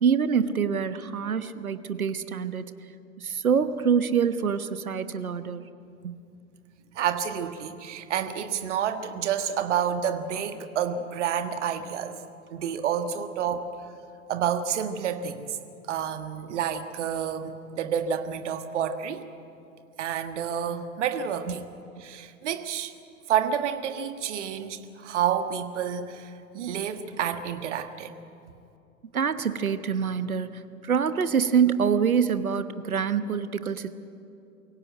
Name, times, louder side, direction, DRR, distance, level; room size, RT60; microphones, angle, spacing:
voice 1, 0.0-2.6 3.2-5.6 6.0-6.2 29.1-33.9, right 7 dB, 75° right, 12 dB, 1.2 m, -25 dB
voice 2, 6.9-12.2 12.5-13.7 14.3-15.6 15.9-19.3 20.0-21.6 22.0-22.9 23.3-28.1, right 8 dB, 55° right, 9 dB, 1.7 m, -29 dB
24.0 x 16.5 x 9.1 m, 2.6 s
figure-of-eight pair, 100°, 43 cm